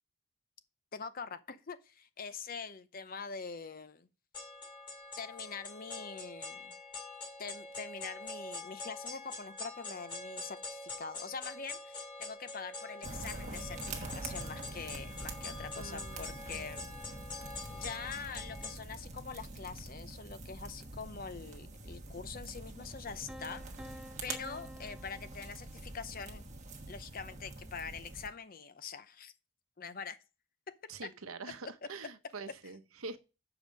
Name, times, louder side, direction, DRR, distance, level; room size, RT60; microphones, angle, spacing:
voice 1, 0.9-4.1 5.2-6.7 7.4-16.8 17.7-26.4 26.9-29.3 29.8-30.2 30.7-30.8, left 5 dB, 45° left, 0.7 m, -44 dB
sound 1, 4.3-18.7, left 3 dB, 20° left, 2.4 m, -45 dB
sound 2, 13.0-28.3, right 2 dB, 35° right, 1.2 m, -45 dB
voice 2, 15.7-16.9 30.9-33.2, right 4 dB, 80° right, 0.9 m, -46 dB
Piano, 23.3-26.2, equal, 5° right, 0.3 m, -51 dB
7.1 x 5.0 x 6.3 m
head